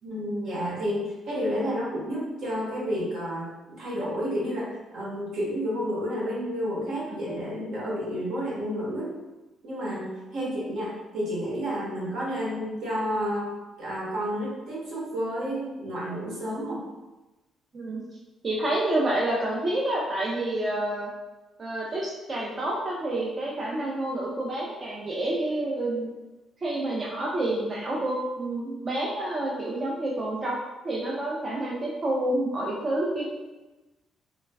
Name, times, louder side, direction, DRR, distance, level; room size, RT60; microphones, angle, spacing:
voice 1, 0.0-9.1 9.6-13.5 13.8-16.9, equal, 75° right, -6 dB, 1.0 m, -30 dB
voice 2, 18.4-21.1 21.6-26.1 26.6-30.6 30.8-33.3, right 1 dB, 30° right, -4 dB, 0.4 m, -28 dB
3.0 x 2.3 x 2.3 m, 1.1 s
cardioid pair, 120°, 0 cm